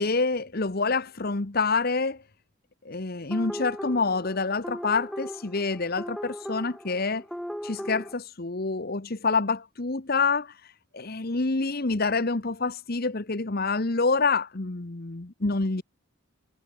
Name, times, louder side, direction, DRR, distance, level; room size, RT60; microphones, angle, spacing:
voice 1, 0.0-2.2 2.8-7.2 7.6-15.8, left 4 dB, 45° left, 1.1 m, -27 dB
sound 1, 3.3-8.1, equal, ahead, 3.0 m, -38 dB
head